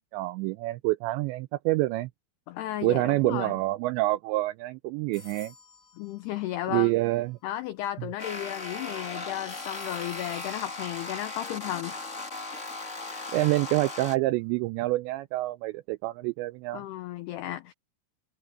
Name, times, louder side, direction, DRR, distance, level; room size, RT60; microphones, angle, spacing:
voice 1, 0.1-2.1 2.8-5.5 6.7-7.4 13.3-16.8, right 19 dB, 90° right, 2.5 m, -27 dB
voice 2, 2.5-3.5 6.0-6.9 7.4-12.0 16.7-17.7, left 14 dB, 80° left, 2.3 m, -34 dB
sound 1, 5.1-7.2 9.5-12.5, left 3 dB, 45° left, 1.0 m, -52 dB
sound 2, 8.2-14.2, left 3 dB, 25° left, 1.7 m, -37 dB
omnidirectional pair, 5.6 m